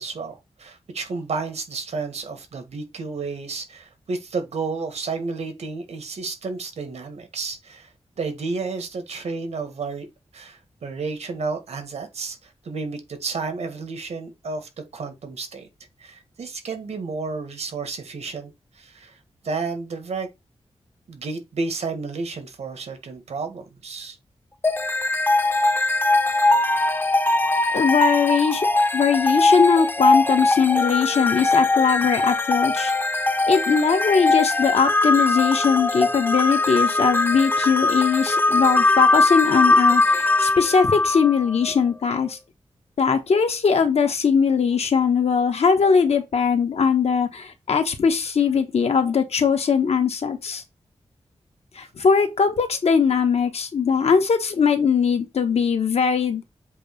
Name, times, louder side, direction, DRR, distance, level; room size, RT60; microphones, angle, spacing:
voice 1, 0.0-7.9 8.2-10.1 10.3-15.7 16.0-19.2 19.4-20.3 21.1-24.2, right 4 dB, 90° right, 1.6 m, -31 dB
sound 1, 24.6-41.8, left 2 dB, 20° left, 0.6 m, -20 dB
voice 2, 27.7-28.7 28.9-32.9 33.5-42.4 43.0-50.6 51.7-56.4, left 6 dB, 75° left, 1.2 m, -20 dB
7.6 x 2.9 x 5.2 m
wide cardioid pair, 175°, 11 cm